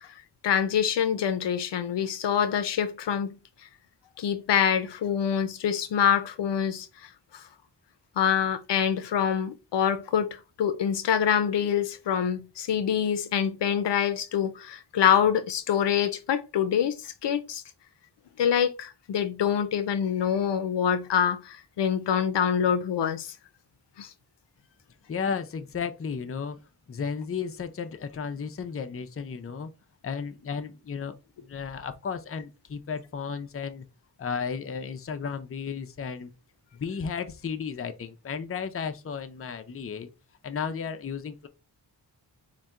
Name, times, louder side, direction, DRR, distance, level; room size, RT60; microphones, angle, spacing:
voice 1, 0.4-3.3 4.2-6.9 8.2-10.3 10.6-17.6 18.4-23.3 24.0-24.1, left 8 dB, 85° left, 0.5 m, -25 dB
voice 2, 25.1-26.6 26.9-29.7 30.0-31.1 31.4-33.8 34.2-36.3 36.7-40.1 40.4-41.5, left 6 dB, 35° left, 0.5 m, -34 dB
4.0 x 2.2 x 3.5 m
wide cardioid pair, 85°, 41 cm